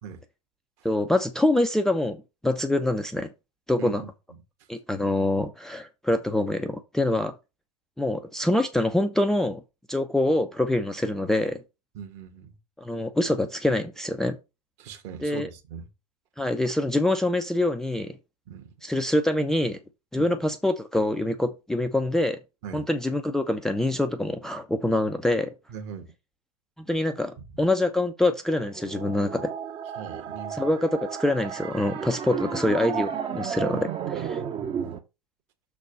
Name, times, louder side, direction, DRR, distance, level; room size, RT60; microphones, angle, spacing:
voice 1, 0.8-3.3 3.7-4.0 4.7-7.3 8.0-9.6 9.9-11.6 12.8-14.4 15.2-15.5 16.4-18.2 18.8-19.8 20.1-22.4 22.7-25.5 26.8-29.5 30.5-34.4, left 1 dB, ahead, 0.5 m, -25 dB
voice 2, 3.8-4.1 7.1-7.2 11.9-12.5 14.8-15.9 18.5-18.7 20.2-20.3 22.6-22.8 25.7-26.1 30.0-30.7 34.2-34.3, right 7 dB, 45° right, 1.8 m, -40 dB
sound 1, 28.5-35.0, right 8 dB, 25° right, 0.9 m, -33 dB
6.7 x 4.1 x 5.3 m
figure-of-eight pair, 100°, 21 cm